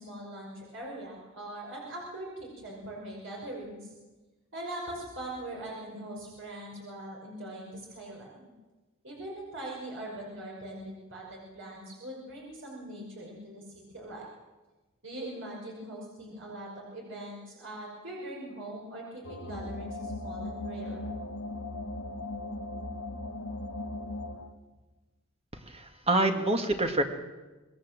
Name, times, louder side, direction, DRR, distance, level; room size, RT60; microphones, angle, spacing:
voice 1, 0.0-3.9 4.5-8.5 9.0-14.3 15.0-21.0, right 1 dB, 60° right, -2 dB, 5.5 m, -41 dB
sound 1, 19.2-24.5, left 2 dB, 85° left, 2.0 m, -38 dB
voice 2, 25.7-27.0, right 2 dB, 30° right, 5 dB, 2.0 m, -26 dB
26.0 x 20.0 x 7.5 m, 1.2 s
head